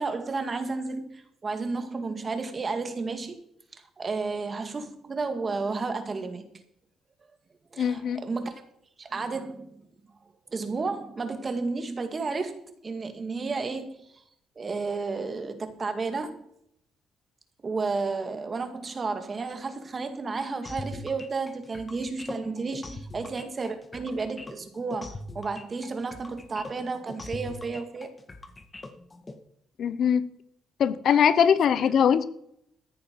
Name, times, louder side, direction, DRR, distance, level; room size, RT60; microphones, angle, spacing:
voice 1, 0.0-3.4 4.0-6.4 7.7-8.6 9.0-9.8 10.5-14.2 14.6-16.4 17.6-28.1, right 4 dB, 35° right, 2.1 m, -32 dB
voice 2, 7.8-8.2 29.8-30.3 30.8-32.3, left 8 dB, 65° left, 0.8 m, -21 dB
sound 1, 20.6-29.3, left 2 dB, 25° left, 1.8 m, -41 dB
14.5 x 9.9 x 4.8 m
cardioid pair, 90°, 0 cm